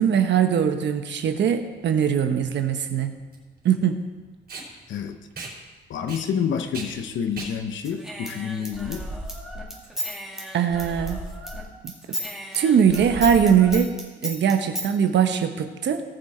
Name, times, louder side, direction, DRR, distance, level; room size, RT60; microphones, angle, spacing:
voice 1, 0.0-3.1 3.6-4.0 10.5-11.2 12.1-12.2 12.5-13.9 14.2-16.0, right 8 dB, 65° right, 7 dB, 1.1 m, -21 dB
Packing tape duct tape, 1.7-9.2, right 3 dB, 50° right, 4.0 m, -41 dB
voice 2, 4.9-5.2 5.9-9.0, left 7 dB, 70° left, 8 dB, 1.1 m, -28 dB
Human voice / Scissors, 7.8-11.6 11.9-14.9, equal, ahead, 2.3 m, -34 dB
18.5 x 6.4 x 4.4 m, 1.3 s
cardioid pair, 90°, 20 cm